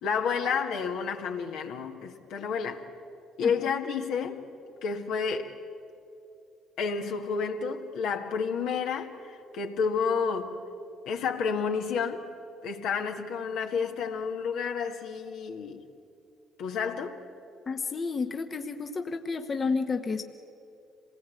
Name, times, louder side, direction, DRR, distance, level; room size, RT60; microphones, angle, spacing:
voice 1, 0.0-2.8 3.4-4.5 4.8-5.5 6.8-10.6 11.1-12.2 12.6-15.8 16.6-17.2, left 6 dB, 75° left, 1.8 m, -30 dB
voice 2, 17.7-20.2, left 4 dB, 40° left, 1.2 m, -31 dB
26.5 x 18.5 x 8.5 m
supercardioid pair, 65°, 0 cm